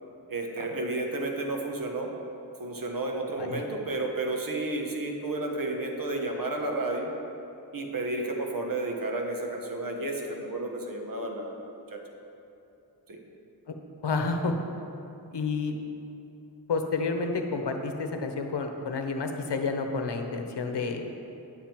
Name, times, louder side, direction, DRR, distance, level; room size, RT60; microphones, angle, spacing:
voice 1, 0.3-2.1 2.6-7.1 7.7-11.6 11.9-12.0 13.1-13.2, right 2 dB, 50° right, 1 dB, 1.1 m, -32 dB
voice 2, 14.0-14.5 15.3-15.7 16.7-21.0, left 4 dB, 70° left, 5 dB, 0.9 m, -30 dB
9.7 x 7.4 x 4.5 m, 2.9 s
wide cardioid pair, 110°, 42 cm